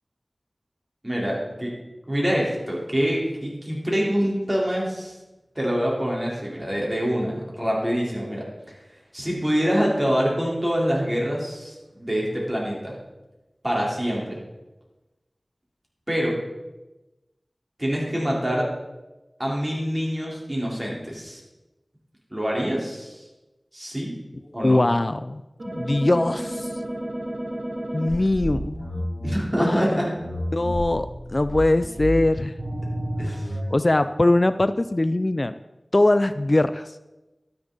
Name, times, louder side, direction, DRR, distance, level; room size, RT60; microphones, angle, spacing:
voice 1, 1.0-1.7 2.1-5.1 5.6-8.4 9.1-12.9 13.6-14.4 16.1-16.4 17.8-18.6 19.4-21.4 22.3-23.2 23.7-24.2 24.5-24.8 29.2-30.1 33.2-33.4, equal, 25° right, -3 dB, 3.8 m, -25 dB
voice 2, 24.6-25.4 25.7-26.7 27.9-29.1 29.6-30.0 30.5-32.6 33.3-33.4 33.7-35.6 35.9-37.0, left 2 dB, 45° left, 12 dB, 0.3 m, -21 dB
sound 1, 25.6-29.3 30.2-33.7, equal, 90° right, 3.8 m, -31 dB
12.0 x 10.5 x 4.0 m, 1.0 s
wide cardioid pair, 55°, 0 cm